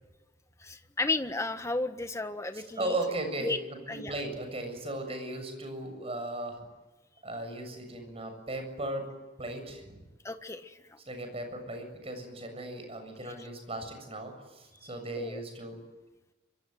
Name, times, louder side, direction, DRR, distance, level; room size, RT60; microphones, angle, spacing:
voice 1, 0.6-3.0 3.4-3.6 3.9-4.1 10.2-11.0 15.2-15.4, left 2 dB, 15° left, 8 dB, 1.5 m, -33 dB
voice 2, 2.5-6.6 7.2-9.1 9.4-10.0 11.1-15.8, right 1 dB, 30° right, 6 dB, 7.3 m, -37 dB
25.0 x 25.0 x 9.4 m, 1.2 s
head